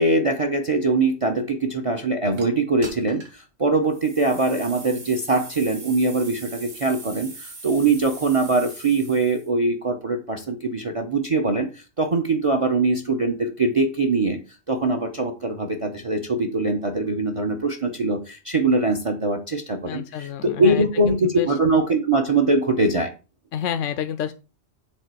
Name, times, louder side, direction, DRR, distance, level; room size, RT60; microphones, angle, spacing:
voice 1, 0.0-14.4 14.7-23.1, right 3 dB, 30° right, 6 dB, 0.9 m, -22 dB
sound 1, 2.4-2.5 2.8-3.4 3.9-9.5, right 3 dB, 85° right, 2.5 m, -41 dB
voice 2, 19.8-21.6 23.5-24.3, left 9 dB, 80° left, 9 dB, 1.0 m, -29 dB
7.4 x 4.1 x 6.8 m, 0.32 s
omnidirectional pair, 1.3 m